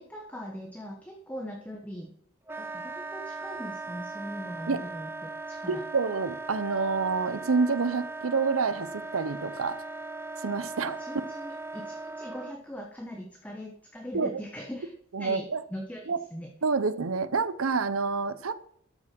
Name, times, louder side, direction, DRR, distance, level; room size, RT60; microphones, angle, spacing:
voice 1, 0.0-2.1 2.6-5.8 11.0-14.9 15.2-16.5, equal, 5° left, 0 dB, 1.0 m, -41 dB
Wind instrument woodwind instrument, 2.5-12.6, right 3 dB, 10° right, 0.6 m, -39 dB
voice 2, 5.7-9.8 10.4-11.0 14.1-14.4 15.1-15.6 16.1-16.2 16.6-18.5, right 4 dB, 80° right, 14 dB, 0.8 m, -28 dB
12.5 x 6.0 x 6.0 m, 0.64 s
head